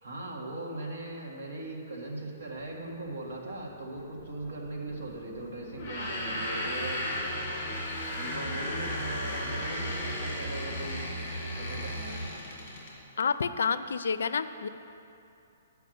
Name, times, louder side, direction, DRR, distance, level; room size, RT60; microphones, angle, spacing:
voice 1, 0.0-7.0 8.2-11.0 11.6-11.9, right 2 dB, 55° right, -1 dB, 1.7 m, -39 dB
sound 1, 2.4-12.3, right 1 dB, 75° right, 2.2 m, -42 dB
sound 2, 5.7-13.0, left 1 dB, 30° left, 1.9 m, -35 dB
voice 2, 13.2-14.7, left 5 dB, 80° left, 13 dB, 0.4 m, -29 dB
8.0 x 5.6 x 7.7 m, 2.7 s
hypercardioid pair, 175°, 0 cm